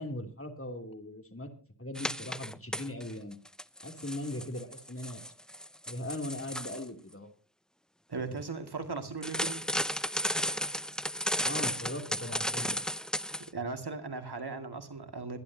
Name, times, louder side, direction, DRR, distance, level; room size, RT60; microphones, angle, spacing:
voice 1, 0.0-1.5 1.8-3.4 3.8-5.2 5.9-7.3 11.4-12.8, left 1 dB, 35° left, 3.1 m, -39 dB
sound 1, 2.0-3.1 3.5-6.8 9.2-13.5, equal, ahead, 0.5 m, -34 dB
voice 2, 8.1-9.6 13.4-15.4, right 4 dB, 75° right, 2.2 m, -38 dB
22.0 x 11.0 x 2.8 m
wide cardioid pair, 50°, 39 cm